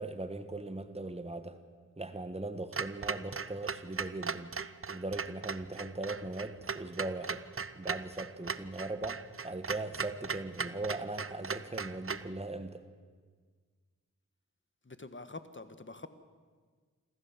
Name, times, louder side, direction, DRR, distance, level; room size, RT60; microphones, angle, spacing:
voice 1, 0.0-1.6 2.0-4.5 4.9-7.4 7.7-12.8, right 2 dB, 20° right, 9 dB, 1.4 m, -39 dB
Clock, 2.7-12.3, right 5 dB, 45° right, 0.7 m, -38 dB
voice 2, 14.8-16.1, left 3 dB, 40° left, 11 dB, 1.6 m, -46 dB
26.5 x 14.0 x 7.4 m, 1.6 s
cardioid pair, 40°, 31 cm